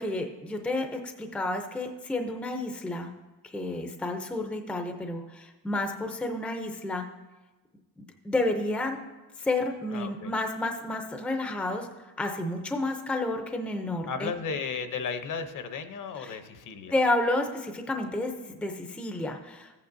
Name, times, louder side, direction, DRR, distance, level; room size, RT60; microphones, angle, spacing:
voice 1, 0.0-3.1 3.4-7.1 8.0-9.0 9.4-14.3 16.2-16.4 16.9-19.7, left 2 dB, 5° left, 5 dB, 0.5 m, -31 dB
voice 2, 9.9-10.3 14.1-16.9, left 5 dB, 50° left, 9 dB, 0.8 m, -34 dB
15.0 x 8.6 x 2.6 m, 1.1 s
cardioid pair, 155°, 40 cm